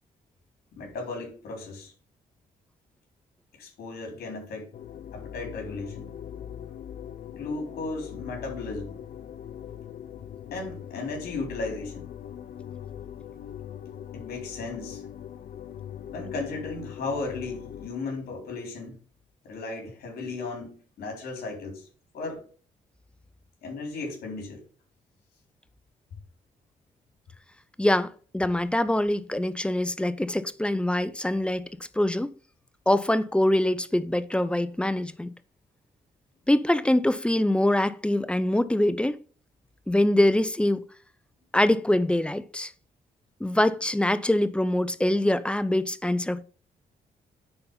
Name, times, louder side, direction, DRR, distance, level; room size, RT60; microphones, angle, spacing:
voice 1, 0.7-1.9 3.6-4.7 5.1-6.1 7.3-9.0 10.5-12.1 14.1-15.0 16.1-19.0 19.4-21.9 22.1-22.4 23.6-24.6, left 3 dB, 80° left, 3.9 m, -35 dB
sound 1, 4.7-17.9, left 9 dB, 65° left, 0.7 m, -41 dB
voice 2, 27.8-31.7 32.0-32.3 32.9-35.3 36.5-39.2 39.9-40.8 41.5-42.7 43.4-46.4, left 1 dB, 5° left, 0.6 m, -24 dB
9.7 x 4.2 x 5.6 m
cardioid pair, 100°, 16 cm